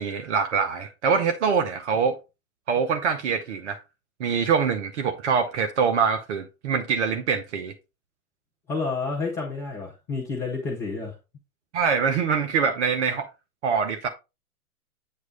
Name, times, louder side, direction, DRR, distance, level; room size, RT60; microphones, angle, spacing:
voice 1, 0.0-2.2 2.7-3.8 4.2-7.7 11.7-13.3 13.6-14.1, right 6 dB, 50° right, 0.9 m, -24 dB
voice 2, 8.7-11.1, left 4 dB, 5° left, 0.3 m, -30 dB
8.6 x 3.1 x 5.1 m
figure-of-eight pair, 110°, 45 cm